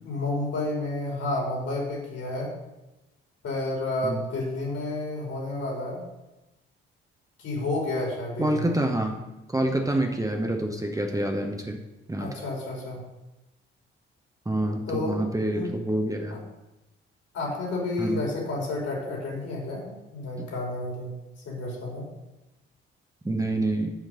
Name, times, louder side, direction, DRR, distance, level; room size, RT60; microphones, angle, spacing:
voice 1, 0.0-2.5 3.4-6.0 7.4-8.8 12.2-13.0 14.9-15.2 15.5-15.7 17.3-21.2 21.4-22.1, left 2 dB, 55° left, -2 dB, 3.5 m, -30 dB
voice 2, 8.4-9.2 9.5-11.8 12.1-12.3 14.4-16.4 18.0-18.2 20.4-20.5 23.2-23.9, right 1 dB, 10° right, 3 dB, 1.1 m, -27 dB
9.7 x 5.1 x 6.3 m, 1.0 s
figure-of-eight pair, 40°, 30 cm